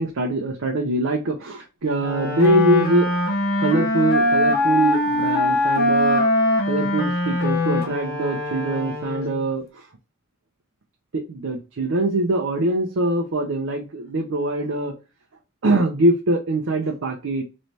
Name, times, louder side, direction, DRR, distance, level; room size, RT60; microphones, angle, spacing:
voice 1, 0.0-3.1 3.6-6.3 6.7-9.9 11.1-15.0 15.6-17.4, right 1 dB, 80° right, 2 dB, 0.6 m, -23 dB
Wind instrument woodwind instrument, 2.0-9.5, left 1 dB, 50° left, 0.9 m, -22 dB
3.2 x 3.1 x 2.7 m, 0.28 s
head